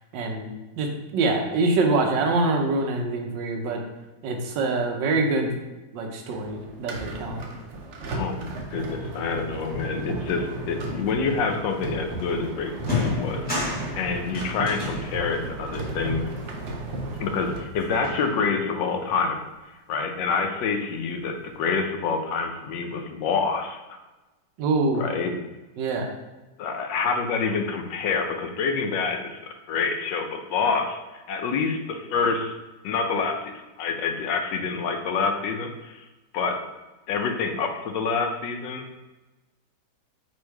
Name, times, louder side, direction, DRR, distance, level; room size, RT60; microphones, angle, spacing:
voice 1, 0.1-0.5 0.8-3.8 4.2-5.5 5.9-7.4 24.6-25.0 25.8-26.1, right 3 dB, 85° right, 3 dB, 1.4 m, -25 dB
sound 1, 6.3-17.6, right 2 dB, 60° right, 0.8 m, -34 dB
voice 2, 8.1-8.5 8.7-13.4 13.9-16.2 17.2-19.4 19.9-23.8 24.9-25.3 26.6-32.5 32.8-36.0 36.3-36.6 37.1-38.8, left 5 dB, 90° left, 5 dB, 1.3 m, -27 dB
sound 2, 12.2-12.3 12.7-17.3 17.7-18.6, left 3 dB, 5° left, 1.2 m, -33 dB
4.5 x 2.6 x 4.5 m, 1.1 s
omnidirectional pair, 1.9 m